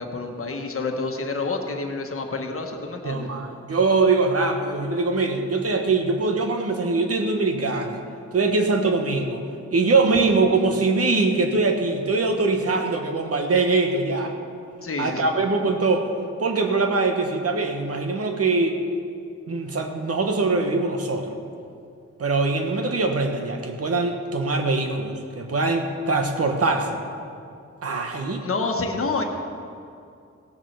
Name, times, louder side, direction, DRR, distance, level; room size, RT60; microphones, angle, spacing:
voice 1, 0.0-3.3 14.8-15.3 28.4-29.2, left 3 dB, 50° left, 3 dB, 1.3 m, -28 dB
voice 2, 3.0-8.0 8.3-9.5 9.7-14.4 15.0-16.1 16.4-18.8 19.5-21.4 22.2-27.0 27.8-28.5, right 3 dB, 55° right, 4 dB, 1.3 m, -22 dB
17.0 x 7.4 x 6.7 m, 2.5 s
wide cardioid pair, 150°, 29 cm